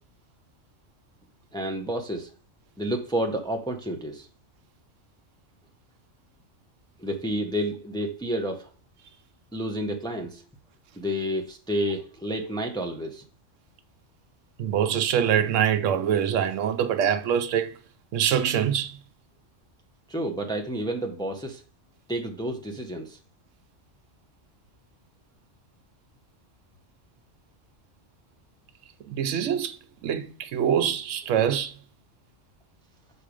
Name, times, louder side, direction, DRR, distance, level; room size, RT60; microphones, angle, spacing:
voice 1, 1.5-2.3 2.8-4.3 7.0-8.7 9.5-10.4 11.0-13.2 20.1-21.6 22.1-23.2, equal, 5° left, 0.6 m, -30 dB
voice 2, 14.6-17.8 18.1-19.0 29.1-31.8, right 9 dB, 80° right, 1.0 m, -24 dB
6.1 x 4.2 x 5.0 m
omnidirectional pair, 1.3 m